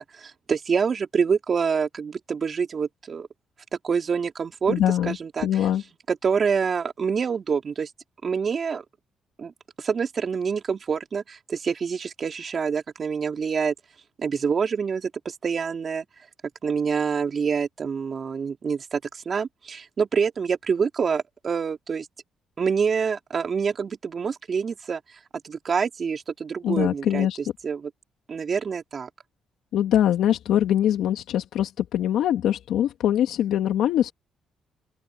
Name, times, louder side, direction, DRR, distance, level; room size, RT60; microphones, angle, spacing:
voice 1, 0.1-3.3 3.8-5.7 6.1-7.9 8.2-8.8 9.4-9.5 9.8-13.7 14.2-16.1 16.6-22.1 22.6-25.0 25.4-27.9 28.3-29.1, right 6 dB, 45° right, 4.2 m, -26 dB
voice 2, 4.7-5.2 5.4-5.8 26.6-27.4 29.7-34.1, left 11 dB, 80° left, 2.3 m, -23 dB
open air
cardioid pair, 90°, 0 cm